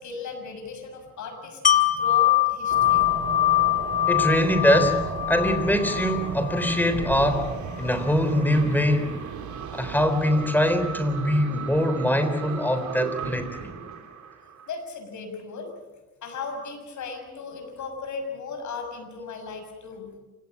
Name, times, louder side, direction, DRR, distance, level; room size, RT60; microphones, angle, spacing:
voice 1, 0.0-3.2 14.7-15.7 16.2-20.1, left 4 dB, 70° left, 6 dB, 6.6 m, -37 dB
Wind chime, 1.6-7.4 7.8-8.0, left 13 dB, 25° left, 1.7 m, -23 dB
sound 1, 2.7-14.7, right 6 dB, 70° right, 3.4 m, -35 dB
voice 2, 4.1-7.5 7.8-9.1 9.7-13.7, equal, 5° left, 9 dB, 3.8 m, -23 dB
28.0 x 17.5 x 8.6 m, 1.2 s
cardioid pair, 90°, 30 cm